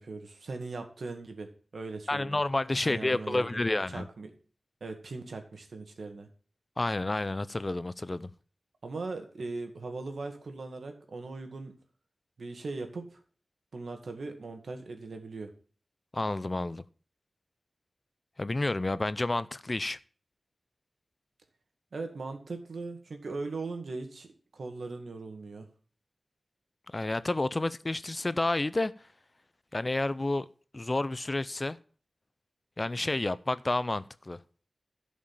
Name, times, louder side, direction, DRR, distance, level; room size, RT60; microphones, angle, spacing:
voice 1, 0.0-1.5 1.7-2.4 2.8-4.3 4.8-6.3 8.8-11.7 12.4-13.2 13.7-15.5 21.9-24.3 24.5-25.7, right 3 dB, 80° right, 1.9 m, -39 dB
voice 2, 2.1-4.1 6.8-8.3 16.1-16.8 18.4-20.0 26.9-28.9 29.7-30.5 30.7-31.8 32.8-34.4, left 2 dB, 35° left, 0.5 m, -30 dB
11.5 x 5.3 x 7.1 m
wide cardioid pair, 65°, 0 cm